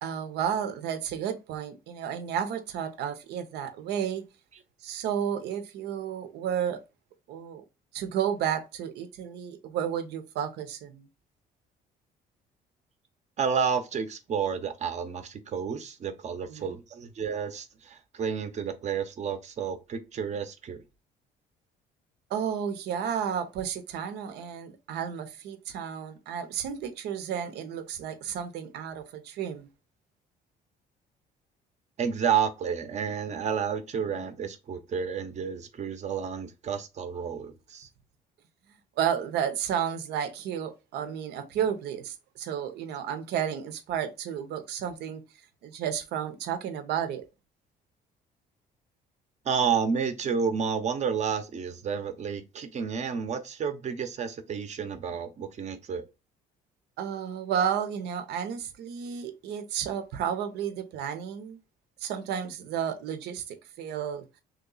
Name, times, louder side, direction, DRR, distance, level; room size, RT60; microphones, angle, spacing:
voice 1, 0.0-4.2 4.8-6.8 7.3-7.6 7.9-11.1 16.5-16.8 22.3-29.7 39.0-45.2 45.6-47.2 57.0-61.6 62.0-64.3, right 8 dB, 80° right, 0.7 m, -32 dB
voice 2, 13.4-20.8 32.0-37.9 49.4-56.0, right 6 dB, 45° right, 0.8 m, -30 dB
3.1 x 2.9 x 3.9 m
cardioid pair, 110°, 17 cm